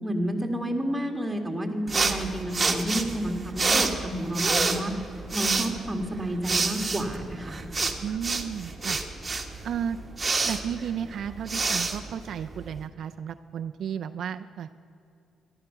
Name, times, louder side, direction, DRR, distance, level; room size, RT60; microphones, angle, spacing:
voice 1, 0.0-4.9 5.3-7.5, right 1 dB, 10° right, 3 dB, 1.9 m, -30 dB
sound 1, 1.9-12.8, right 3 dB, 25° right, 1.3 m, -28 dB
voice 2, 8.0-9.0 9.6-10.0 10.4-14.7, right 8 dB, 65° right, 9 dB, 0.4 m, -33 dB
14.0 x 12.0 x 5.8 m, 2.6 s
cardioid pair, 90°, 0 cm